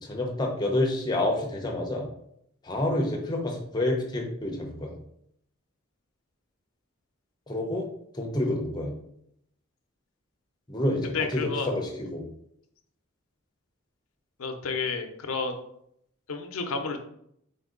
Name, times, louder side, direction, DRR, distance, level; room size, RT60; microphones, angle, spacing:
voice 1, 0.0-2.1 2.6-5.0 7.5-7.9 8.1-8.9 10.7-12.2, left 1 dB, 20° left, 0 dB, 0.6 m, -28 dB
voice 2, 11.1-11.7 14.4-15.6 16.3-17.0, left 4 dB, 90° left, 6 dB, 0.6 m, -30 dB
3.9 x 2.7 x 3.7 m, 0.73 s
head